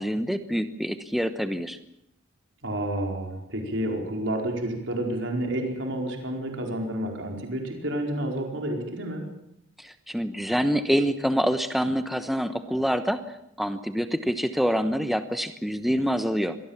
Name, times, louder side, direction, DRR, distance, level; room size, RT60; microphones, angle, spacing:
voice 1, 0.0-1.8 9.8-13.2 13.6-16.6, equal, ahead, 9 dB, 1.1 m, -26 dB
voice 2, 2.6-9.2, right 1 dB, 70° right, 2 dB, 4.7 m, -30 dB
24.5 x 18.5 x 7.3 m, 0.78 s
head